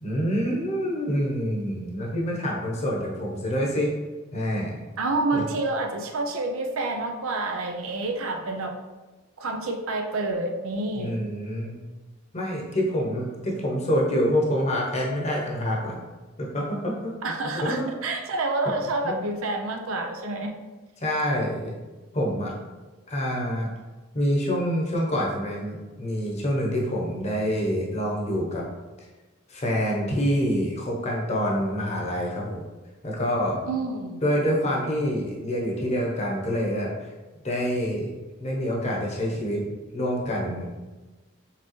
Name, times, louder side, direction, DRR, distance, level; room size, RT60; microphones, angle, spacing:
voice 1, 0.0-3.9 4.3-4.8 5.3-5.4 10.9-11.8 12.3-16.0 16.4-17.2 17.4-17.9 19.0-19.2 21.0-21.7 22.1-22.5 23.1-23.7 24.1-28.6 29.5-32.6 33.0-33.6 34.2-36.9 37.4-38.1 38.4-40.7, equal, 30° left, -2 dB, 0.8 m, -26 dB
voice 2, 5.0-8.8 9.4-11.1 17.2-20.6 33.7-34.2, right 2 dB, 85° right, 4 dB, 0.6 m, -28 dB
4.7 x 3.5 x 3.1 m, 1.2 s
head